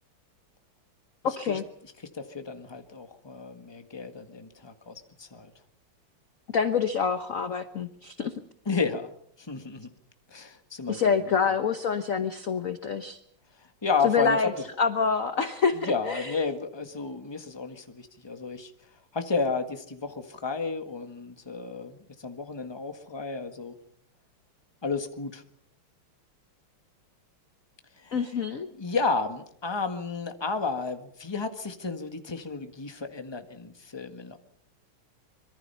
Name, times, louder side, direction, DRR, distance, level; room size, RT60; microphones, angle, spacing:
voice 1, 1.2-1.6 6.5-8.3 10.9-13.2 14.0-14.5 14.8-16.4 28.1-28.7, left 6 dB, 50° left, 9 dB, 1.2 m, -26 dB
voice 2, 2.1-5.5 8.6-9.1 9.4-9.9 10.3-11.0 13.8-14.5 15.7-18.7 19.1-23.7 24.8-25.4 28.0-28.3 28.8-34.4, left 4 dB, 15° left, 7 dB, 1.4 m, -32 dB
25.0 x 23.0 x 5.7 m, 0.66 s
omnidirectional pair, 2.4 m